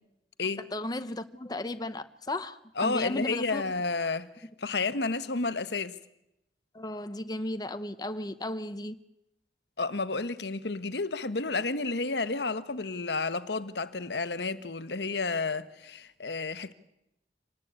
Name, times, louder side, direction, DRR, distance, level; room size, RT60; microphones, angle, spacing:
voice 1, 0.7-3.6 6.7-9.0, left 1 dB, 20° left, 0.8 m, -35 dB
voice 2, 2.8-6.0 9.8-16.7, left 3 dB, 70° left, 1.2 m, -31 dB
26.0 x 19.0 x 8.7 m
head